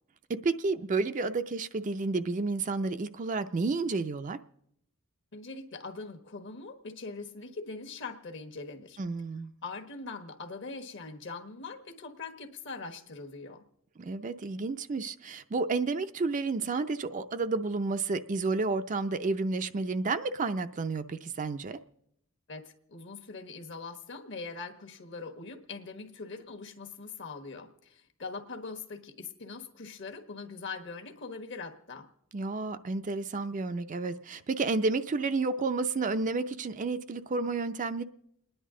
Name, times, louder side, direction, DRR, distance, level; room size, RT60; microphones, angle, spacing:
voice 1, 0.4-4.4 9.0-9.5 14.0-21.8 32.3-38.0, right 3 dB, 35° right, 0.4 m, -31 dB
voice 2, 5.3-9.0 9.6-13.6 22.5-32.1, left 4 dB, 60° left, 1.3 m, -42 dB
29.5 x 10.0 x 3.7 m
head